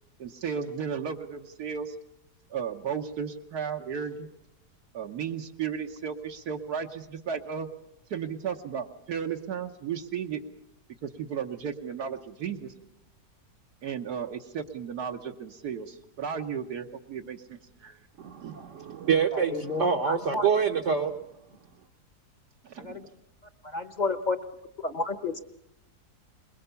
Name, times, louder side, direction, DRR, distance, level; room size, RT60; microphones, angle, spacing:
voice 1, 0.2-2.0 2.5-4.3 4.9-7.7 8.1-10.4 11.0-12.7 13.8-18.1 18.4-18.6 19.1-19.2 22.6-23.1, right 7 dB, 75° right, 2 dB, 1.5 m, -34 dB
voice 2, 18.2-21.2, right 6 dB, 55° right, 1 dB, 1.2 m, -26 dB
voice 3, 19.3-20.5 22.8-23.1 23.6-24.4 24.8-25.4, left 3 dB, 30° left, 9 dB, 1.0 m, -31 dB
22.5 x 21.5 x 6.8 m, 0.87 s
omnidirectional pair, 1.7 m